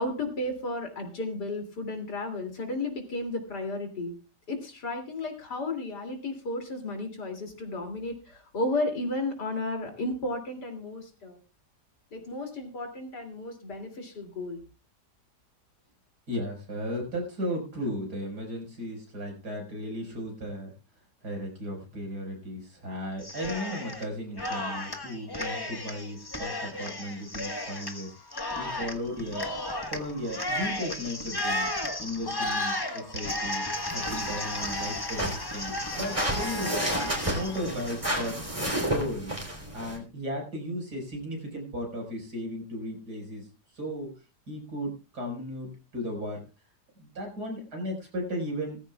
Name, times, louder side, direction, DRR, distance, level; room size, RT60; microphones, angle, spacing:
voice 1, 0.0-4.2 4.5-11.4 12.1-14.6, left 2 dB, 75° left, 4 dB, 3.3 m, -33 dB
voice 2, 16.3-20.7 21.2-28.1 28.5-29.5 29.9-31.7 32.0-37.0 37.2-38.4 38.9-39.4 39.7-43.5 43.7-44.2 44.5-46.4 47.0-48.8, equal, 70° right, 2 dB, 5.6 m, -35 dB
Cheering, 23.2-24.1 24.4-38.7, left 1 dB, 15° left, 1.2 m, -34 dB
sound 1, 33.8-40.0, right 1 dB, 20° right, 3.4 m, -32 dB
18.5 x 14.5 x 2.3 m, 0.31 s
omnidirectional pair, 1.8 m